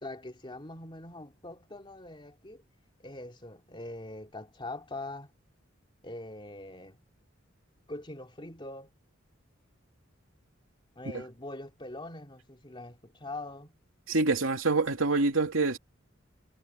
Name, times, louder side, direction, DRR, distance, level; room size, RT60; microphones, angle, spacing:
voice 1, 0.0-2.6 3.0-5.3 6.0-7.0 7.9-8.9 10.9-13.8, left 2 dB, 25° left, 3.1 m, -43 dB
voice 2, 14.1-15.8, right 3 dB, 75° right, 2.9 m, -26 dB
head